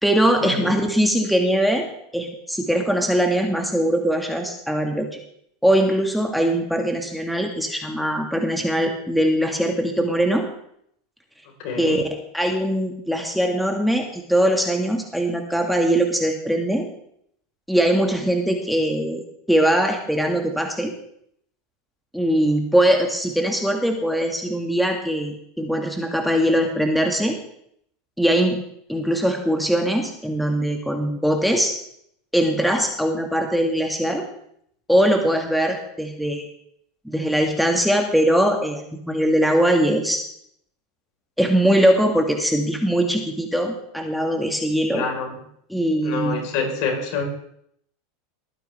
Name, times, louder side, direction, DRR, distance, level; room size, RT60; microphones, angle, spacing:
voice 1, 0.0-1.9 2.1-5.1 5.6-10.5 11.8-12.0 12.3-16.9 17.7-19.2 19.5-20.9 22.1-27.4 28.2-28.6 28.9-31.7 32.3-34.2 34.9-36.5 37.0-40.2 41.4-45.0 45.7-46.3, right 1 dB, ahead, 3 dB, 1.8 m, -21 dB
voice 2, 11.6-12.0 44.9-45.3 46.0-47.2, left 5 dB, 60° left, 2 dB, 4.3 m, -26 dB
21.0 x 9.4 x 3.5 m, 0.70 s
hypercardioid pair, 95°, 0 cm